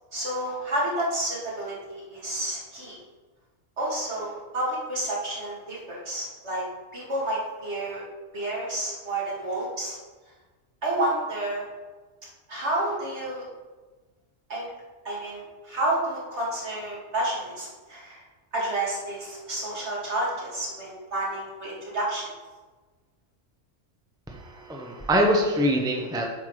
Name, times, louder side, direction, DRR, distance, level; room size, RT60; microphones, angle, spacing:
voice 1, 0.1-3.0 3.8-6.6 6.9-8.0 8.3-10.0 10.8-11.6 12.5-13.4 14.5-14.7 15.0-18.2 18.5-22.3, right 1 dB, 60° right, -5 dB, 2.7 m, -30 dB
voice 2, 24.3-26.3, equal, 5° right, 0 dB, 0.9 m, -24 dB
8.9 x 6.0 x 4.8 m, 1.3 s
omnidirectional pair, 1.3 m